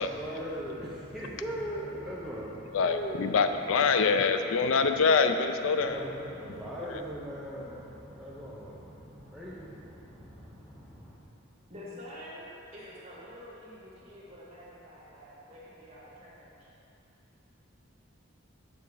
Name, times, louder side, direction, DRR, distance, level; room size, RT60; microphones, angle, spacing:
voice 1, 0.0-3.5 5.7-11.2, equal, ahead, -8 dB, 0.7 m, -40 dB
voice 2, 2.7-6.0, left 5 dB, 70° left, 8 dB, 0.4 m, -25 dB
voice 3, 11.7-16.7, equal, 30° right, -9 dB, 2.1 m, -47 dB
7.2 x 7.2 x 4.7 m, 2.8 s
head